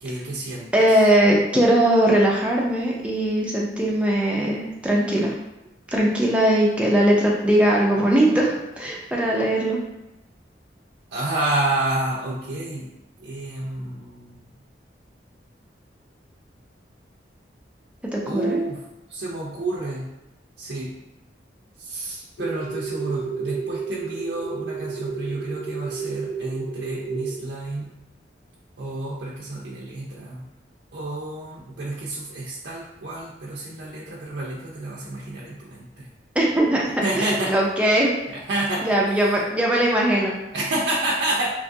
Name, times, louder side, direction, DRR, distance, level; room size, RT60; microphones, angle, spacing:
voice 1, 0.0-1.1 11.1-12.9 13.2-14.4 18.2-20.1 20.6-20.9 21.8-27.9 28.8-30.5 30.9-36.1 37.0-37.5 38.3-39.2 40.5-41.5, right 2 dB, 70° right, -5 dB, 0.4 m, -29 dB
voice 2, 0.7-5.3 5.9-9.8 18.1-18.6 36.4-38.1 38.8-40.3, right 1 dB, 5° right, -3 dB, 0.4 m, -20 dB
sound 1, 22.4-27.4, right 5 dB, 85° left, 1.4 m, -31 dB
2.9 x 2.3 x 2.6 m, 0.95 s
head